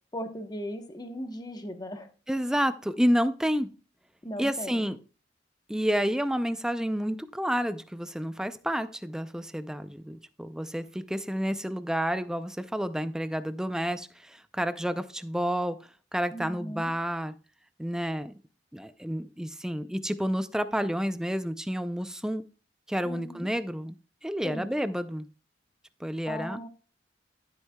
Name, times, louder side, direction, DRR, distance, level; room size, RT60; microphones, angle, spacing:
voice 1, 0.1-2.1 4.2-4.9 16.3-16.9 23.0-23.5 24.4-24.7 26.3-26.7, equal, 20° left, 7 dB, 1.0 m, -37 dB
voice 2, 2.3-3.7 4.4-5.0 5.7-15.8 16.1-17.3 17.8-18.3 18.7-22.4 22.9-24.0 24.2-25.3 26.0-26.6, equal, 5° right, 12 dB, 0.4 m, -30 dB
13.0 x 8.1 x 2.2 m, 0.35 s
head